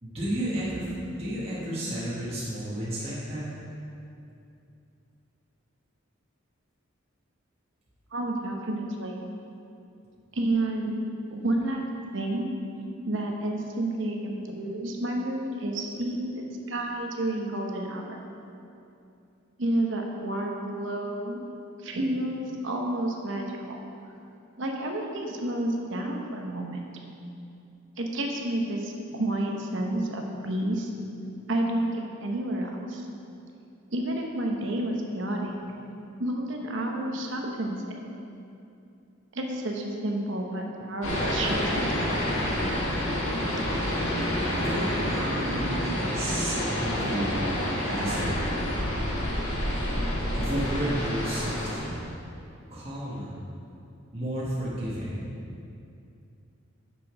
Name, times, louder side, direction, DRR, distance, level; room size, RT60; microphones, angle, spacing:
voice 1, 0.0-3.5 44.6-48.4 50.3-52.1 52.7-53.4 54.1-55.3, right 1 dB, 30° right, -8 dB, 1.3 m, -32 dB
voice 2, 8.1-9.2 10.3-11.8 12.1-12.5 13.0-18.2 19.6-21.4 21.8-23.8 24.6-26.8 28.0-30.9 31.5-33.1 33.9-35.5 36.2-37.8 39.3-41.8 43.0-43.2, right 1 dB, 60° right, 1 dB, 0.9 m, -30 dB
sound 1, 41.0-51.7, equal, 75° left, 1.6 m, -28 dB
6.8 x 6.2 x 4.9 m, 2.6 s
head